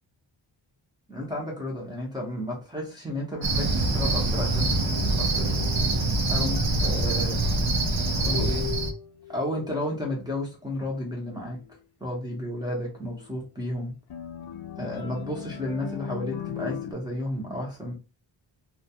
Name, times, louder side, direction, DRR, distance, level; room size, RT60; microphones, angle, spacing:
voice 1, 1.1-5.6 6.3-7.5 8.2-8.7 9.3-11.6 12.0-13.9 14.8-17.9, left 1 dB, 10° right, -4 dB, 0.7 m, -32 dB
Cricket, 3.4-8.9, right 2 dB, 70° right, 0.7 m, -25 dB
sound 1, 4.3-10.3 10.8-11.4 12.5-12.6 14.1-16.9, left 10 dB, 55° left, 0.5 m, -40 dB
2.3 x 2.3 x 2.8 m, 0.32 s
wide cardioid pair, 135°, 47 cm